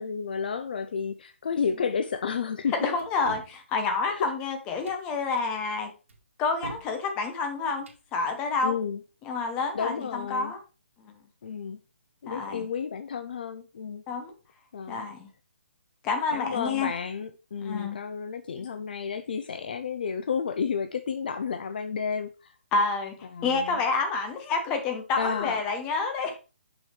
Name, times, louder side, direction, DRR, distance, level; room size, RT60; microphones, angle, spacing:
voice 1, 0.0-2.7 4.1-4.3 8.6-9.0 9.7-10.5 11.4-11.8 12.2-14.0 14.7-15.1 16.3-22.6 23.2-23.8 25.2-25.6, left 6 dB, 45° left, 0.5 m, -31 dB
voice 2, 2.8-5.9 6.4-8.7 9.2-10.6 11.0-11.2 12.3-12.7 14.1-14.3 14.9-15.3 16.0-16.9 17.6-18.0 18.6-18.7 22.7-23.2 23.4-26.4, left 4 dB, 15° left, 0.9 m, -28 dB
sound 1, 3.0-3.6 4.7-5.1 6.1-6.9 7.7-8.0, right 2 dB, 75° right, 2.1 m, -43 dB
6.2 x 6.2 x 3.2 m
hypercardioid pair, 170°, 7 cm